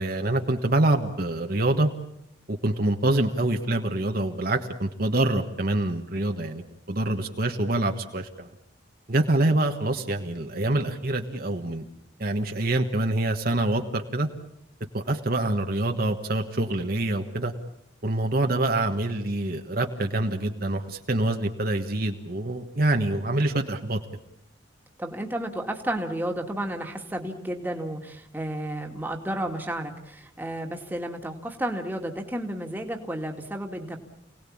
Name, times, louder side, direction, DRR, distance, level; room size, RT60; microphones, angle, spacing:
voice 1, 0.0-1.9 2.5-6.6 6.9-8.5 9.1-11.9 12.2-14.3 14.9-17.5 18.0-24.0, right 2 dB, 45° right, 4 dB, 1.5 m, -25 dB
voice 2, 25.0-34.0, right 1 dB, 10° right, 2 dB, 2.2 m, -32 dB
28.5 x 18.5 x 8.7 m, 0.80 s
head